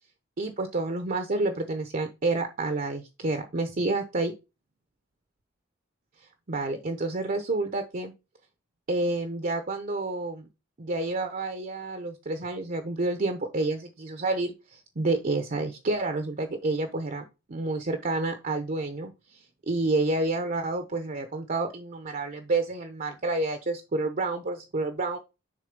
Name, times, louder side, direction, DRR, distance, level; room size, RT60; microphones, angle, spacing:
voice 1, 0.4-4.3 6.5-8.1 8.9-10.5 10.8-17.2 17.5-25.2, right 2 dB, 45° right, 8 dB, 0.7 m, -29 dB
6.7 x 3.7 x 5.1 m, 0.27 s
head